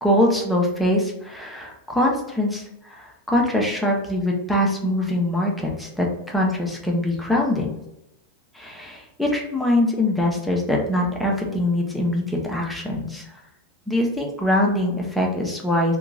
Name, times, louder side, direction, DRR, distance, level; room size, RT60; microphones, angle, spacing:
voice 1, 0.0-7.7 8.5-13.2 13.9-16.0, left 1 dB, 5° left, -1 dB, 0.8 m, -23 dB
2.9 x 2.4 x 3.6 m, 0.85 s
figure-of-eight pair, 90°, 0 cm